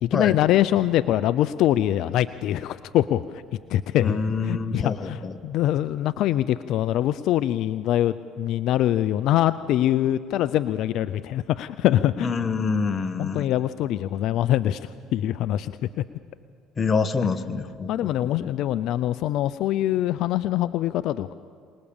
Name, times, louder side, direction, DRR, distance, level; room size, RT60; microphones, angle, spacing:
voice 1, 0.0-3.4 3.7-4.2 4.4-12.3 13.2-15.7 17.9-21.3, left 12 dB, 70° left, 14 dB, 0.5 m, -24 dB
voice 2, 4.0-5.3 12.2-13.5 16.8-18.5, left 4 dB, 35° left, 9 dB, 1.4 m, -26 dB
25.0 x 19.5 x 7.2 m, 2.3 s
supercardioid pair, 85°, 0 cm